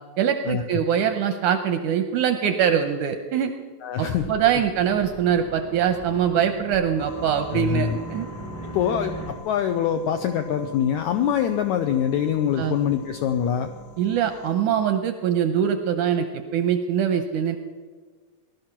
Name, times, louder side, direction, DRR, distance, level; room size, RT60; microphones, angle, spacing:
voice 1, 0.2-3.5 4.0-8.3 12.6-12.8 14.0-16.3 16.5-17.6, right 8 dB, 80° right, 7 dB, 1.9 m, -23 dB
voice 2, 3.8-4.3 7.5-8.0 8.6-13.7, left 9 dB, 80° left, 7 dB, 1.7 m, -24 dB
sound 1, 4.1-9.3, right 2 dB, 15° left, 0.6 m, -38 dB
sound 2, 7.0-14.5, left 4 dB, 45° left, 1.6 m, -46 dB
19.0 x 12.0 x 5.9 m, 1.5 s
omnidirectional pair, 4.2 m